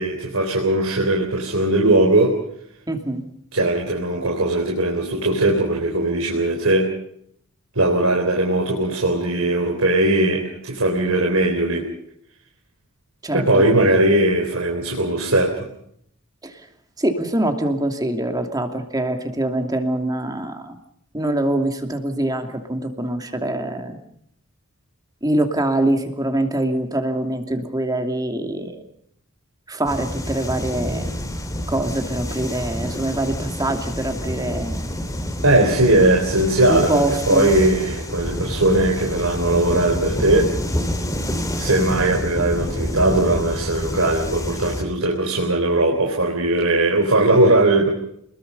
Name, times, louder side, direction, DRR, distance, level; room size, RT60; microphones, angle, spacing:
voice 1, 0.0-2.3 3.5-6.9 7.8-11.9 13.3-15.7 35.4-40.5 41.6-47.9, right 1 dB, 65° right, 1 dB, 3.9 m, -19 dB
voice 2, 2.9-3.2 13.2-13.4 16.4-16.6 17.0-20.8 21.1-24.0 25.2-28.8 29.7-31.1 31.7-34.8 36.7-37.5, right 1 dB, 15° right, 5 dB, 2.7 m, -24 dB
sound 1, 29.8-44.8, equal, 15° left, 3.0 m, -28 dB
28.0 x 21.0 x 5.5 m, 0.71 s
head